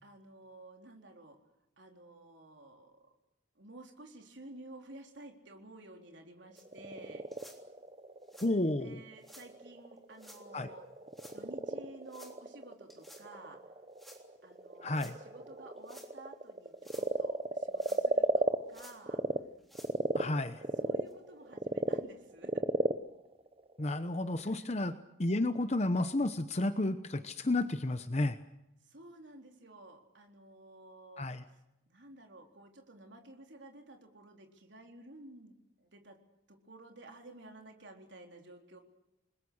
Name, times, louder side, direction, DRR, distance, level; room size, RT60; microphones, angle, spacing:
voice 1, 0.0-1.4 1.8-3.1 3.6-7.3 8.5-10.8 11.3-13.6 14.4-19.2 20.8-22.6 24.4-24.7 28.8-36.2 36.5-38.8, right 2 dB, 70° right, 3 dB, 3.9 m, -53 dB
Frog, 6.5-19.4 19.7-24.4, right 2 dB, 30° right, 0.9 m, -35 dB
sound 1, 6.6-6.7 7.3-7.6 8.2-8.5 9.2-9.5 10.1-10.4 11.1-11.4 12.1-12.4 12.9-13.2 14.0-14.2 14.9-15.1 15.8-16.1 16.6-17.1 17.8-18.3 18.7-19.0 19.6-19.9 20.5-20.6 21.1-21.2 21.9-22.0, equal, ahead, 3.4 m, -55 dB
voice 2, 8.4-9.0 10.5-10.7 14.8-15.2 20.1-20.6 23.8-24.9 25.2-28.4 31.2-31.4, left 2 dB, 35° left, 10 dB, 0.9 m, -31 dB
29.0 x 21.0 x 6.5 m, 0.91 s
head